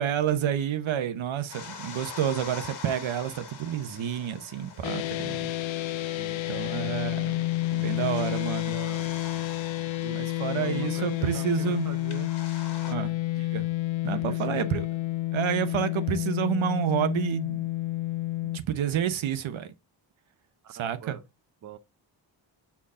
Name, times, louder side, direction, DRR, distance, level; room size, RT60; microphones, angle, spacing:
voice 1, 0.0-5.5 6.5-7.4 7.7-8.7 10.1-11.9 12.9-13.1 13.5-13.7 14.0-14.8 15.3-17.6 18.5-19.7 20.8-21.2, right 9 dB, 85° right, 1.0 m, -29 dB
sound 1, 1.5-12.9, left 6 dB, 60° left, 1.6 m, -45 dB
sound 2, 4.8-18.6, left 17 dB, 80° left, 0.6 m, -30 dB
voice 2, 6.2-7.0 8.6-9.2 10.0-10.2 10.5-12.3 12.9-13.1 14.1-14.7 20.6-21.2 21.6-21.8, right 9 dB, 40° right, 0.6 m, -43 dB
7.1 x 4.5 x 3.5 m
wide cardioid pair, 170°, 46 cm